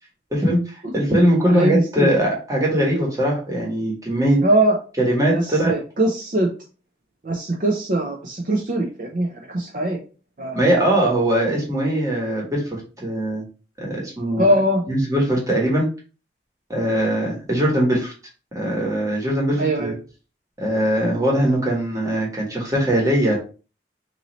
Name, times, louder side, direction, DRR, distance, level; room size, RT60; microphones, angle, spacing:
voice 1, 0.3-4.4 5.0-5.7 10.5-13.4 13.8-14.4 14.9-15.9 16.7-18.1 18.5-19.9 20.6-23.4, right 1 dB, 20° right, -3 dB, 1.3 m, -21 dB
voice 2, 1.5-2.1 4.4-4.8 5.3-6.5 7.2-10.0 10.4-10.8 14.4-14.8 19.6-19.9, right 1 dB, 45° right, 0 dB, 0.5 m, -21 dB
3.0 x 2.6 x 3.9 m, 0.36 s
head